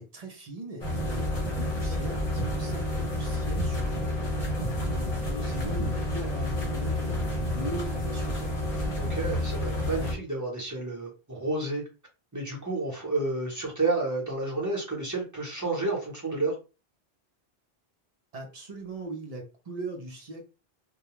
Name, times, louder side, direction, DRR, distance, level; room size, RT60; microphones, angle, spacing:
voice 1, 0.0-8.9 18.3-20.4, right 1 dB, 45° right, 1 dB, 0.6 m, -40 dB
sound 1, 0.8-10.1, left 1 dB, 40° left, 0.9 m, -29 dB
voice 2, 9.0-11.8 12.3-16.5, right 2 dB, 20° right, -3 dB, 0.9 m, -30 dB
2.2 x 2.2 x 2.9 m, 0.31 s
omnidirectional pair, 1.1 m